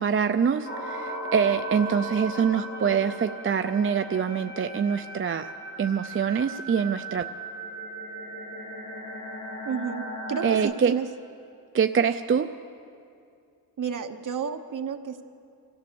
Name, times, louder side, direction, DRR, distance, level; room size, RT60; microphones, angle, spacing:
voice 1, 0.0-5.5 5.8-7.3 10.4-11.0 11.7-12.5, right 7 dB, 35° right, 8 dB, 0.4 m, -25 dB
sound 1, 0.6-10.6, equal, 35° left, 4.2 m, -37 dB
voice 2, 9.6-11.0 13.8-15.2, right 7 dB, 55° right, 6 dB, 1.2 m, -31 dB
25.5 x 15.5 x 6.9 m, 2.5 s
wide cardioid pair, 150°, 36 cm